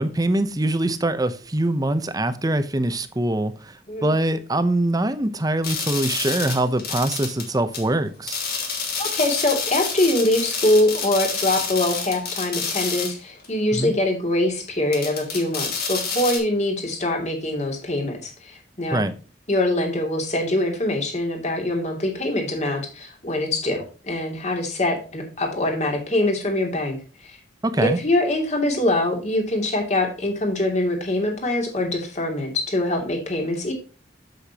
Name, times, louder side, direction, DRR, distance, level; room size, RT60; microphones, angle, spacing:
voice 1, 0.0-8.4 13.7-13.9 18.9-19.2 27.6-28.0, right 1 dB, 20° right, 10 dB, 0.8 m, -23 dB
sound 1, 5.6-7.5 7.7-7.8 8.3-13.2 13.4-13.5 14.9-16.4, left 5 dB, 55° left, 3.1 m, -28 dB
voice 2, 9.0-19.0 19.5-27.0 27.2-27.4 27.7-33.7, left 1 dB, 40° left, 2 dB, 2.7 m, -23 dB
8.3 x 7.9 x 2.9 m, 0.36 s
head